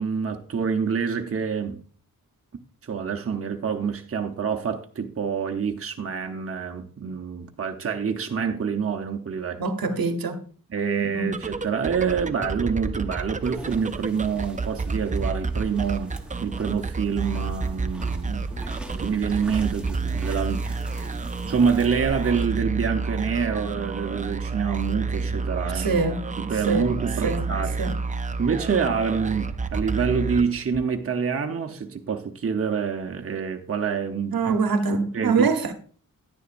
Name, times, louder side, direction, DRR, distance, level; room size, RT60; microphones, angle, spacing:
voice 1, 0.0-1.8 2.8-9.6 10.7-18.5 19.0-20.9 21.5-26.1 26.4-27.7 28.4-34.5 35.1-35.5, right 6 dB, 40° right, 0.8 m, -26 dB
voice 2, 9.6-10.4 11.0-11.4 25.7-26.2 26.7-26.9 27.2-27.5 27.8-27.9 34.3-35.7, right 4 dB, 80° right, 1.0 m, -24 dB
sound 1, 11.2-31.0, right 4 dB, 20° right, 0.4 m, -30 dB
sound 2, 13.4-22.5, right 1 dB, 5° right, 0.9 m, -41 dB
10.0 x 9.9 x 2.5 m
wide cardioid pair, 120°, 35 cm